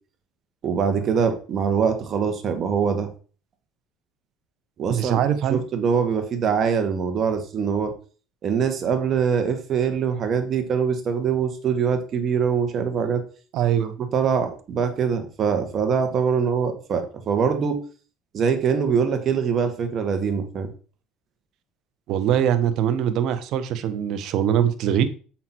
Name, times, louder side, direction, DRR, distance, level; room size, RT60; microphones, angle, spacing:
voice 1, 0.6-3.1 4.8-5.2 5.5-7.9 8.4-13.2 14.1-17.8 18.3-20.7, right 6 dB, 45° right, 6 dB, 1.8 m, -23 dB
voice 2, 4.9-5.6 13.5-13.9 22.1-25.0, right 9 dB, 60° right, 10 dB, 1.1 m, -22 dB
7.4 x 5.8 x 4.6 m, 0.38 s
cardioid pair, 115°, 0 cm